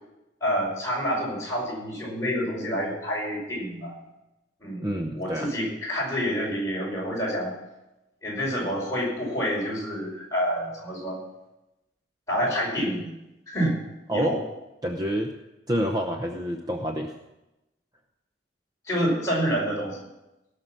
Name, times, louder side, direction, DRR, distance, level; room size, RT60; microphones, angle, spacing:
voice 1, 0.4-4.0 4.6-4.8 5.1-7.5 8.2-11.2 12.3-13.1 13.5-13.8 14.1-14.4 18.9-20.0, equal, 15° left, -4 dB, 5.2 m, -28 dB
voice 2, 4.8-5.5 14.1-14.4 14.8-15.3 15.7-17.2, equal, 20° right, 3 dB, 0.7 m, -27 dB
17.5 x 6.7 x 7.5 m, 0.97 s
head